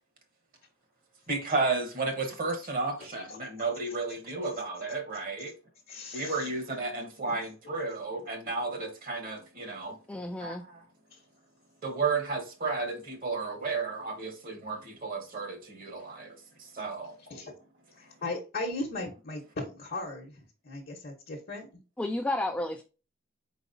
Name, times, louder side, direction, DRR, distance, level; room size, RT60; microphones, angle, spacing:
voice 1, 1.3-5.5 6.1-9.9 10.4-10.8 11.8-16.3 16.6-17.1, right 3 dB, 45° right, 1.1 m, -33 dB
voice 2, 5.9-6.5 11.1-11.2 17.2-17.5 17.9-21.7, left 2 dB, 50° left, 0.9 m, -37 dB
voice 3, 10.1-10.6 22.0-22.8, left 2 dB, 5° left, 0.3 m, -31 dB
4.5 x 4.1 x 2.6 m
head